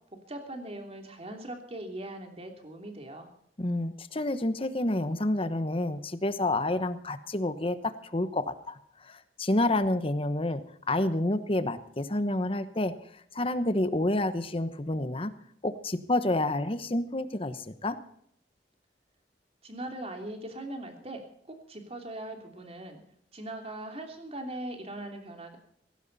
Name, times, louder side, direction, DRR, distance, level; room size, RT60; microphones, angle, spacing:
voice 1, 0.3-3.3 19.6-21.2 21.5-23.0 23.3-25.6, right 1 dB, 35° right, 4 dB, 3.0 m, -40 dB
voice 2, 3.6-8.8 9.0-10.6 10.9-12.9 13.3-15.3 15.6-18.0, left 1 dB, 30° left, 12 dB, 1.1 m, -29 dB
17.5 x 16.0 x 4.2 m, 0.69 s
head